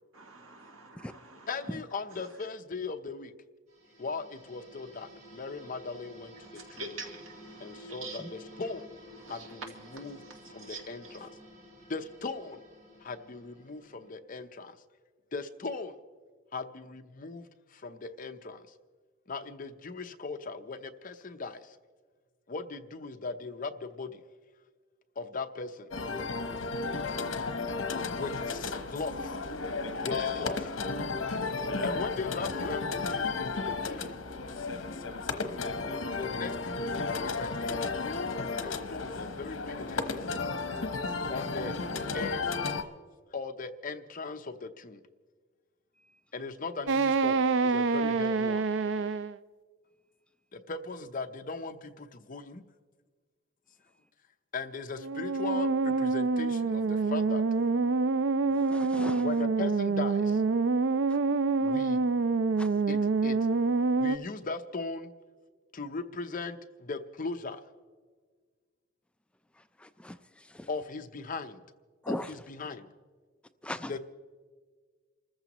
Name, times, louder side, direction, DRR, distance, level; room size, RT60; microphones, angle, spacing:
voice 1, 0.1-1.7 2.1-2.5 6.4-8.6 9.1-11.2, right 3 dB, 85° right, 2.4 m, -46 dB
voice 2, 1.5-3.3 4.0-6.3 7.6-8.9 9.3-9.6 9.9-10.2 10.5-11.3 11.9-12.6 13.0-14.7 15.3-15.9 16.5-17.4 17.8-18.6 19.3-21.6 22.5-23.7 24.0-24.1 25.2-25.7 28.2-29.1 30.0-30.6 31.8-34.1 36.2-40.3 41.3-41.8 42.1-42.4 43.3-45.0 46.3-48.6 50.5-52.6 54.5-57.4 59.2-60.3 61.6-62.0 62.9-63.0 63.2-63.3 64.0-65.1 65.7-66.6 66.8-67.6 70.7-71.6 72.1-72.9 73.9-74.0, left 4 dB, 45° left, 0.7 m, -38 dB
sound 1, 3.7-14.1, equal, 40° right, 4.6 m, -52 dB
sound 2, 25.9-42.8, left 4 dB, 75° left, 1.0 m, -33 dB
sound 3, 46.9-49.3 55.0-64.2, right 4 dB, 65° right, 0.4 m, -26 dB
voice 3, 58.5-59.2 62.6-62.7 69.8-70.2 70.5-70.7 72.0-72.3 73.6-73.9, left 1 dB, 5° left, 0.3 m, -38 dB
28.5 x 14.5 x 3.0 m
head